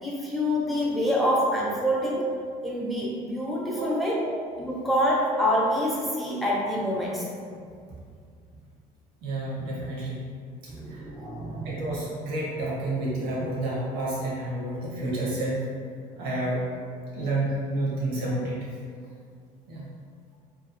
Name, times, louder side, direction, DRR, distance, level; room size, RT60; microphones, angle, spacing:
voice 1, 0.0-2.3 2.6-4.2 4.6-7.3 10.7-11.7, equal, ahead, -5 dB, 0.7 m, -26 dB
voice 2, 3.8-4.4 9.2-10.3 10.6-15.6 16.2-16.7 17.1-18.7 19.7-19.9, right 1 dB, 85° right, -5 dB, 0.9 m, -30 dB
2.9 x 2.4 x 2.4 m, 2.2 s
supercardioid pair, 80°, 18 cm